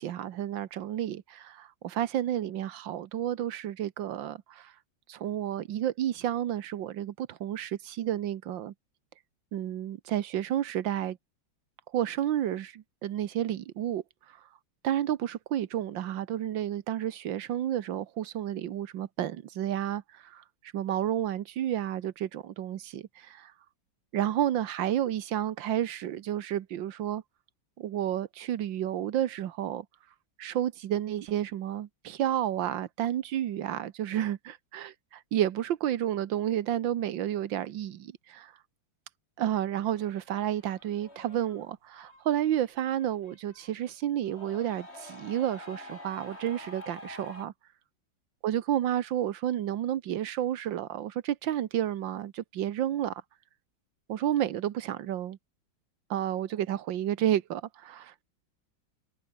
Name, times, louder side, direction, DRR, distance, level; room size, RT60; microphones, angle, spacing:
voice 1, 0.0-4.7 5.1-8.7 9.5-11.2 11.9-14.0 14.8-20.4 20.7-23.5 24.1-27.2 27.8-29.8 30.4-38.5 39.4-47.5 48.4-53.2 54.1-55.4 56.1-58.1, right 11 dB, 75° right, 1.7 m, -31 dB
sound 1, 39.9-43.9 44.3-47.5, left 1 dB, 30° left, 7.8 m, -48 dB
omnidirectional pair, 2.1 m